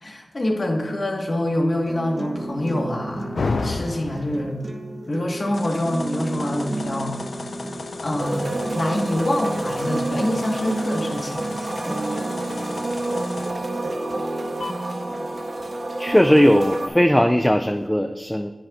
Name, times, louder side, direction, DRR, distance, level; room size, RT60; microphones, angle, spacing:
voice 1, 0.0-4.6 5.1-7.2 8.0-11.5, left 1 dB, 55° left, 2 dB, 1.3 m, -25 dB
sound 1, 1.9-17.9, right 2 dB, 40° right, 0.9 m, -33 dB
sound 2, 3.3-4.5 5.5-13.5 14.6-14.7, left 3 dB, 75° left, 0.5 m, -33 dB
sound 3, 8.2-16.9, right 2 dB, 65° right, 0.9 m, -29 dB
voice 2, 16.0-18.5, equal, 10° left, 7 dB, 0.4 m, -18 dB
10.0 x 7.9 x 2.4 m, 1.2 s
cardioid pair, 40°, 0 cm